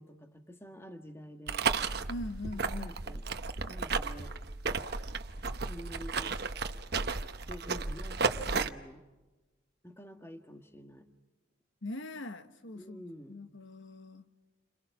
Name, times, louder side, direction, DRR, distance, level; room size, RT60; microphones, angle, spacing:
voice 1, 0.0-1.8 2.5-3.3 3.7-4.4 5.7-6.4 6.8-7.1 7.4-9.0 9.8-11.1 12.7-13.5, equal, 10° left, 1.7 m, -49 dB
sound 1, 1.5-8.7, right 4 dB, 50° right, 1.0 m, -34 dB
voice 2, 2.1-2.9 11.8-14.2, left 1 dB, 70° left, 1.3 m, -42 dB
30.0 x 26.5 x 6.0 m
head